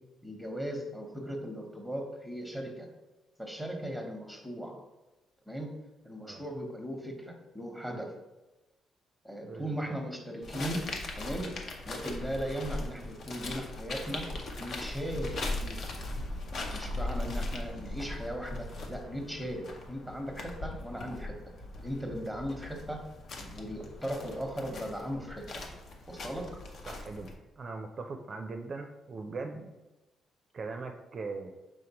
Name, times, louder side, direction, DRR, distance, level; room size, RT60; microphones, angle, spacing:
voice 1, 0.2-2.9 3.4-4.8 5.5-5.7 6.0-8.1 9.2-10.9 11.2-11.5 11.8-14.3 14.6-15.9 16.7-21.4 21.8-23.0 23.4-25.6 26.1-26.5, equal, 5° left, 2 dB, 1.0 m, -38 dB
voice 2, 9.5-10.0 26.9-29.7 30.5-31.5, right 3 dB, 45° right, 5 dB, 0.4 m, -40 dB
sound 1, 10.4-27.4, left 2 dB, 60° left, 0.7 m, -39 dB
5.0 x 3.7 x 2.9 m, 1.1 s
cardioid pair, 90°, 0 cm